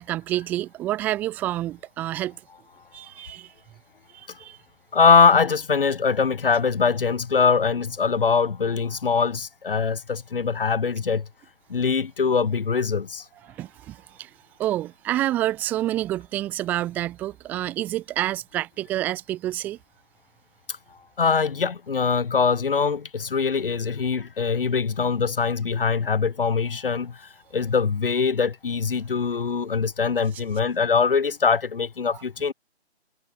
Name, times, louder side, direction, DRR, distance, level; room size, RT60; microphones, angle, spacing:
voice 1, 0.0-2.4 2.9-3.5 4.1-4.6 13.4-14.3 14.6-19.8, right 14 dB, 5° right, 1.4 m, -28 dB
voice 2, 4.9-11.3 11.7-13.3 21.2-32.5, left 5 dB, 55° left, 2.1 m, -22 dB
hypercardioid pair, 170°, 33 cm